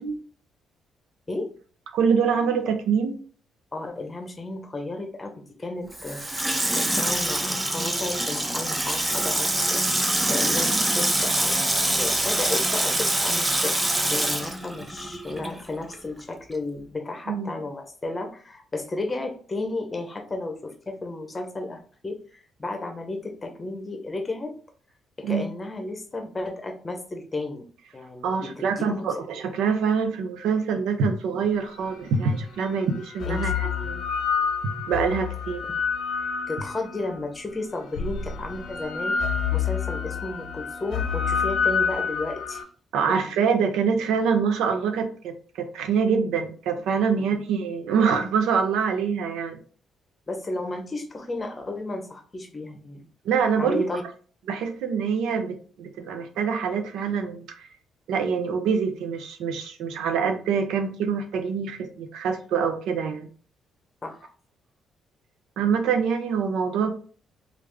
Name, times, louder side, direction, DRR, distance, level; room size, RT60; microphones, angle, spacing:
voice 1, 1.9-3.2 17.3-17.5 25.2-25.4 28.2-34.0 34.9-35.6 42.9-49.6 53.2-53.8 54.5-57.7 58.1-63.3 65.6-66.9, right 6 dB, 85° right, 6 dB, 0.6 m, -25 dB
voice 2, 3.7-6.5 6.7-22.2 22.6-24.5 25.2-27.7 27.9-29.1 33.3-33.5 36.5-42.6 43.1-43.2 47.1-47.4 50.3-53.1 53.6-54.0 64.0-64.3, left 2 dB, 25° left, 4 dB, 0.8 m, -33 dB
Water tap faucet / Sink (filling or washing), 5.9-15.6 15.9-16.0, right 1 dB, 15° right, 0.6 m, -25 dB
sound 1, 31.9-32.0 32.9-37.2 38.0-42.6, left 6 dB, 65° left, 0.6 m, -28 dB
3.4 x 2.4 x 3.4 m, 0.42 s
cardioid pair, 90°, 0 cm